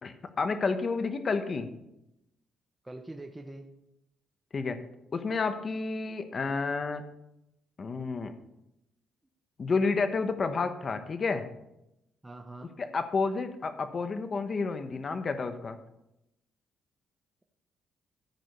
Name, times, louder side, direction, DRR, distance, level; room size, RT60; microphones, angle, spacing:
voice 1, 0.0-1.7 4.5-4.8 5.1-7.0 7.8-8.3 9.6-11.4 12.6-15.8, left 4 dB, 40° left, 9 dB, 1.1 m, -30 dB
voice 2, 2.8-3.7 12.2-12.7, right 2 dB, 15° right, 3 dB, 1.0 m, -43 dB
13.0 x 5.1 x 6.7 m, 0.86 s
cardioid pair, 90°, 0 cm